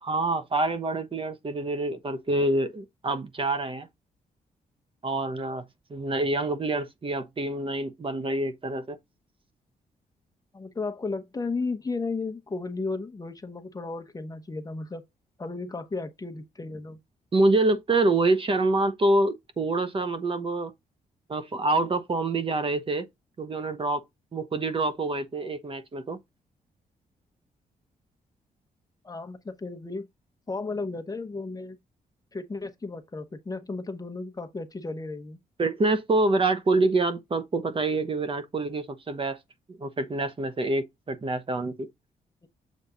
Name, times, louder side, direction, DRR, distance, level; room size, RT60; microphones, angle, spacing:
voice 1, 0.0-3.9 5.0-5.6 5.9-9.0 17.3-20.7 21.3-23.1 23.4-24.0 24.3-26.2 35.6-39.4 39.8-41.9, right 2 dB, 35° right, 1.1 m, -26 dB
voice 2, 10.5-15.0 15.4-17.0 29.0-30.1 30.5-31.8 32.3-35.4, left 3 dB, 25° left, 1.1 m, -34 dB
7.4 x 3.5 x 3.9 m
cardioid pair, 100°, 15 cm